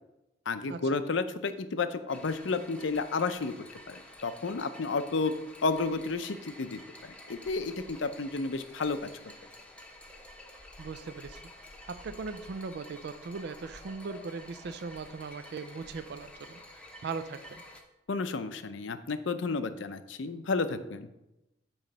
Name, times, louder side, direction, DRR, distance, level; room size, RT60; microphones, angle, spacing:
voice 1, 0.5-3.5 3.9-5.3 5.6-9.1 18.1-21.1, left 4 dB, 70° left, 11 dB, 0.6 m, -31 dB
sound 1, 2.1-17.8, left 1 dB, 5° left, 0.8 m, -50 dB
voice 2, 10.8-11.4 11.9-17.6, right 4 dB, 60° right, 11 dB, 0.4 m, -39 dB
8.8 x 3.1 x 6.5 m, 0.93 s
head